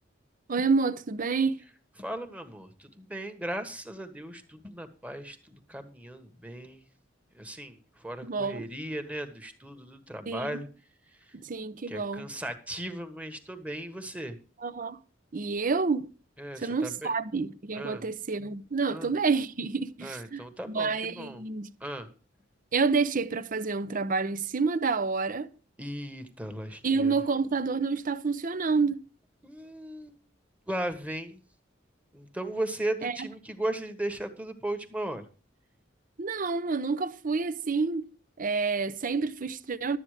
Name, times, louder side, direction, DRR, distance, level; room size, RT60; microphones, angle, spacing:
voice 1, 0.5-1.6 8.2-8.7 10.3-10.6 11.4-12.3 14.6-15.0 15.3-16.1 16.6-20.4 20.7-21.7 22.7-25.5 26.8-29.0 33.0-33.3 36.2-38.1 38.4-40.0, right 4 dB, 45° right, 0.7 m, -28 dB
voice 2, 2.0-6.8 7.3-10.7 11.9-14.4 16.4-17.1 17.7-18.1 18.9-19.1 20.0-21.4 21.8-22.1 25.8-27.1 29.4-30.2 30.7-31.4 32.1-35.2, right 1 dB, 5° right, 1.4 m, -37 dB
12.0 x 8.4 x 4.9 m
head